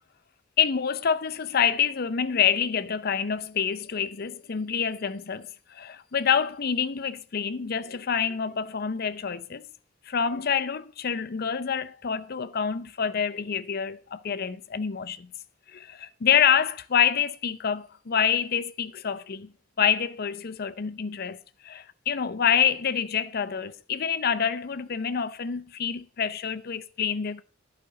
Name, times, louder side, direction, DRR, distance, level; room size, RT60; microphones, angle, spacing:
voice 1, 0.6-9.7 10.1-15.3 15.7-19.5 19.8-27.4, left 7 dB, 50° left, 0.6 m, -27 dB
11.5 x 5.2 x 6.9 m
head